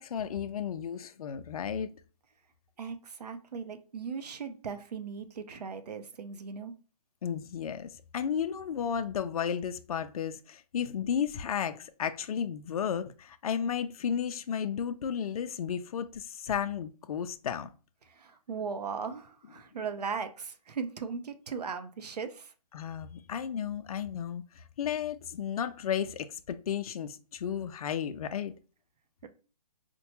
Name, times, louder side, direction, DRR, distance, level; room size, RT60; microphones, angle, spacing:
voice 1, 0.0-1.9 7.2-17.7 22.7-28.5, left 8 dB, 65° left, 0.4 m, -33 dB
voice 2, 2.8-6.7 18.1-22.5 29.2-29.3, right 5 dB, 80° right, 0.6 m, -38 dB
4.4 x 2.1 x 2.8 m
hypercardioid pair, 160°, 20 cm